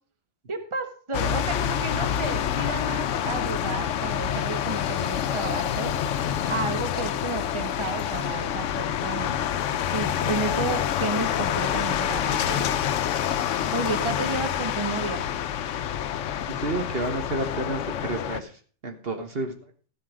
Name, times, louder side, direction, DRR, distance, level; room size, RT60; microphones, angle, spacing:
voice 1, 0.5-5.9 6.5-9.4 9.9-12.7 13.7-15.2, right 3 dB, 25° right, 7 dB, 1.3 m, -32 dB
sound 1, 1.1-18.4, left 9 dB, 80° left, 1.0 m, -27 dB
voice 2, 16.5-18.5 18.8-19.5, right 2 dB, 55° right, 5 dB, 1.6 m, -30 dB
13.5 x 7.6 x 4.9 m, 0.42 s
omnidirectional pair, 1.2 m